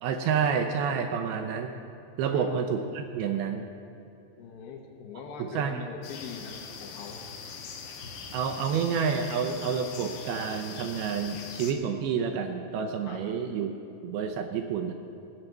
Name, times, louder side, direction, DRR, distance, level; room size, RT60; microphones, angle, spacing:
voice 1, 0.0-1.8 2.2-3.7 5.4-5.8 8.3-13.7 14.0-14.9, right 6 dB, 80° right, 5 dB, 2.4 m, -29 dB
voice 2, 4.4-7.2 13.0-13.2, left 6 dB, 75° left, 2 dB, 2.7 m, -42 dB
sound 1, 6.0-11.7, left 6 dB, 90° left, 3.2 m, -42 dB
16.0 x 5.8 x 7.8 m, 2.7 s
omnidirectional pair, 4.8 m